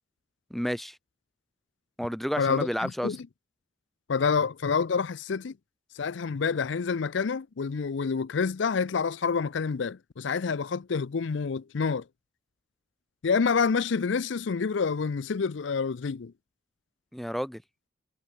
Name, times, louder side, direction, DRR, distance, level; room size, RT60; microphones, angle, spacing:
voice 1, 0.5-1.0 2.0-3.2 17.1-17.6, equal, ahead, 1.2 m, -31 dB
voice 2, 2.4-3.2 4.1-5.5 5.9-12.0 13.2-16.3, left 5 dB, 70° left, 0.5 m, -28 dB
head